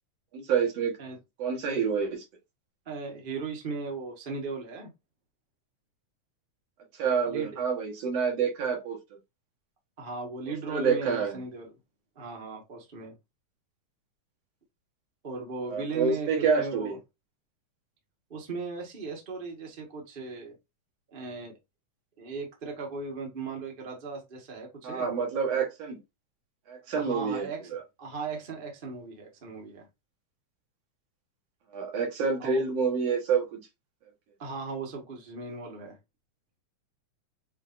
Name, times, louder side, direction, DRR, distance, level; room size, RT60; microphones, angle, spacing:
voice 1, 0.3-0.9 1.4-2.2 7.0-9.0 10.7-11.4 15.7-17.0 24.8-26.0 26.7-27.8 31.7-33.7, right 6 dB, 60° right, 2.2 m, -28 dB
voice 2, 2.8-4.9 7.3-7.5 10.0-11.7 12.1-13.1 15.2-17.0 18.3-20.5 21.1-21.6 22.2-25.1 27.0-27.7 28.0-29.9 32.4-32.6 34.4-36.0, right 4 dB, 45° right, 0.7 m, -37 dB
6.4 x 2.7 x 2.5 m
omnidirectional pair, 3.4 m